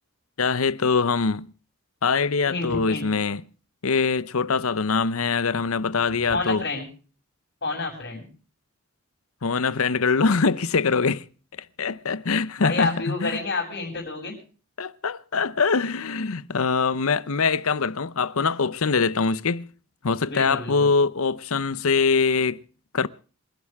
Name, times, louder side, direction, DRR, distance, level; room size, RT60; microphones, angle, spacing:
voice 1, 0.4-1.5 2.0-3.4 3.8-6.6 9.4-11.2 11.8-13.4 14.8-19.7 20.0-22.6 22.9-23.1, left 4 dB, 75° left, 0.8 m, -23 dB
voice 2, 2.5-3.0 6.3-6.8 7.6-8.3 12.3-14.3 20.2-20.9, left 3 dB, 45° left, 7.4 m, -29 dB
28.0 x 11.0 x 3.5 m
head